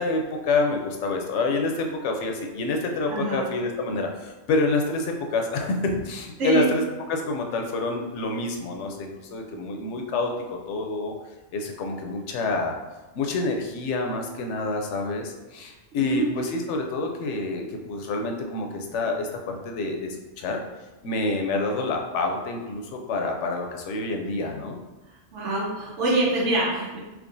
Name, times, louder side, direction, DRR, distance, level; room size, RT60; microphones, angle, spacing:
voice 1, 0.0-6.8 7.1-11.1 11.5-12.8 13.1-20.6 21.0-24.8, left 2 dB, 80° left, 3 dB, 0.9 m, -27 dB
voice 2, 3.1-3.4 6.4-6.6 15.9-16.3 25.3-27.0, right 1 dB, 90° right, -5 dB, 1.3 m, -25 dB
3.6 x 3.0 x 2.5 m, 1.1 s
omnidirectional pair, 1.2 m